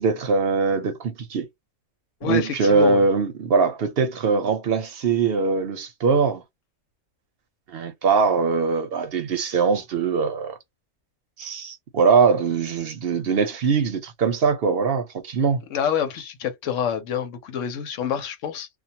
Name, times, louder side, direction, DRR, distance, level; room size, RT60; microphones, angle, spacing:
voice 1, 0.0-1.5 2.2-6.4 7.7-10.6 11.4-15.6, right 5 dB, 60° right, 0.7 m, -22 dB
voice 2, 2.2-3.0 15.7-18.7, left 8 dB, 75° left, 1.0 m, -27 dB
2.3 x 2.3 x 2.6 m
omnidirectional pair, 1.3 m